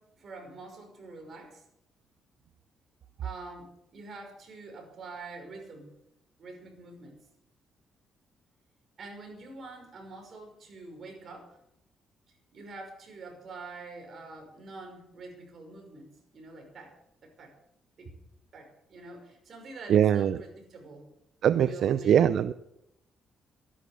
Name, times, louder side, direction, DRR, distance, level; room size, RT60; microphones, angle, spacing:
voice 1, 0.0-1.6 3.2-5.9 6.4-7.2 9.0-11.5 12.5-16.9 17.2-17.5 18.0-18.1 18.5-21.1 21.5-22.2, right 3 dB, 55° right, 3 dB, 5.8 m, -46 dB
voice 2, 19.9-20.4 21.4-22.5, right 9 dB, 70° right, 14 dB, 0.5 m, -22 dB
14.0 x 11.0 x 6.9 m, 0.81 s
cardioid pair, 90°, 0 cm